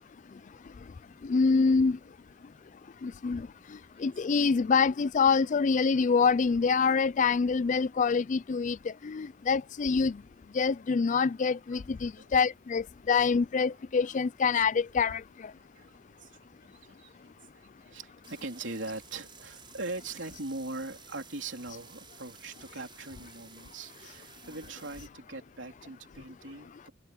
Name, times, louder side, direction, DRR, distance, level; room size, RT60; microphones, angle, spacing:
voice 1, 1.2-2.0 3.0-3.5 4.0-10.2 10.5-15.2, left 5 dB, 40° left, 0.4 m, -26 dB
voice 2, 11.7-12.3 14.1-14.2 15.6-26.9, right 3 dB, 70° right, 3.5 m, -42 dB
sound 1, 18.2-25.1, right 6 dB, 25° right, 5.4 m, -53 dB
head